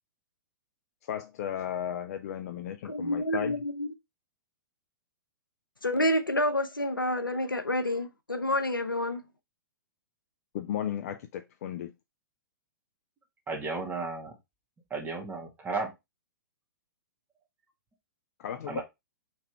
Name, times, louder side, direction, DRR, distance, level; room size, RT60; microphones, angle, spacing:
voice 1, 1.0-3.6 10.5-11.9 18.4-18.8, left 10 dB, 50° left, 0.4 m, -35 dB
voice 2, 2.8-3.9 5.8-9.2, left 1 dB, 90° left, 0.7 m, -28 dB
voice 3, 13.5-14.3 14.9-15.9 18.7-18.8, right 3 dB, 15° right, 1.5 m, -34 dB
3.4 x 3.3 x 4.5 m
figure-of-eight pair, 110°, 11 cm